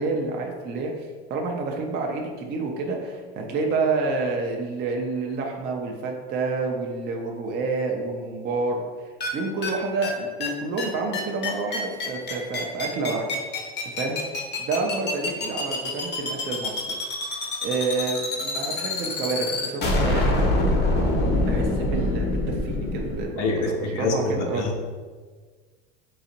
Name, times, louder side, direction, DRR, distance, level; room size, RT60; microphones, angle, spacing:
voice 1, 0.0-8.9 9.3-13.4 13.8-14.2 14.6-16.8 17.3-20.5 21.3-24.7, right 3 dB, 30° right, 1 dB, 0.4 m, -29 dB
sound 1, 9.2-9.3 9.6-9.7 10.0-10.1 10.4-10.5 10.8-10.9 11.1-23.2, left 2 dB, 30° left, 0.7 m, -25 dB
voice 2, 23.4-24.8, left 3 dB, 85° left, 2 dB, 0.7 m, -26 dB
3.9 x 2.4 x 2.8 m, 1.5 s
supercardioid pair, 100°, 34 cm